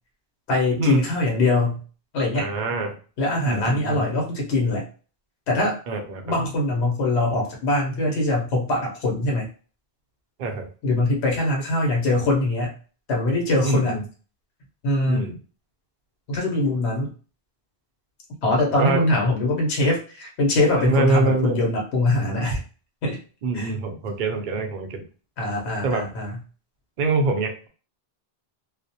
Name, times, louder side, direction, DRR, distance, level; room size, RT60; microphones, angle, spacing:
voice 1, 0.5-1.8 2.1-2.5 3.2-4.9 5.5-5.8 6.2-9.5 10.8-12.7 13.1-14.0 14.8-15.3 16.3-17.1 18.4-22.6 23.0-23.2 23.5-23.7 25.4-26.4, left 2 dB, 85° left, 0 dB, 1.0 m, -22 dB
voice 2, 2.3-3.0 3.5-4.1 5.9-6.4 10.4-10.7 13.6-14.0 15.1-15.4 18.8-19.0 20.8-21.6 23.4-25.0 25.8-26.0 27.0-27.7, right 3 dB, 55° right, 3 dB, 0.6 m, -24 dB
2.4 x 2.0 x 2.7 m, 0.38 s
omnidirectional pair, 1.1 m